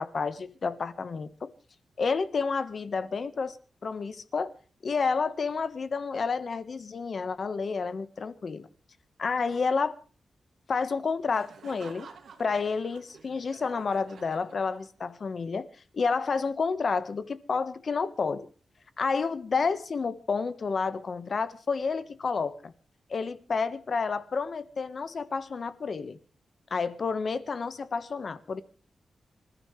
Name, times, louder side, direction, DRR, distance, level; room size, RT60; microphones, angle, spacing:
voice 1, 0.0-1.5 2.0-3.6 3.8-4.5 4.8-8.7 9.2-9.9 10.7-12.1 12.4-15.7 15.9-18.5 19.0-22.7 23.1-26.2 26.7-28.6, left 5 dB, 45° left, 1.4 m, -30 dB
Laughter, 11.3-15.2, right 6 dB, 70° right, 2.4 m, -51 dB
26.5 x 14.0 x 3.3 m
wide cardioid pair, 175°, 0 cm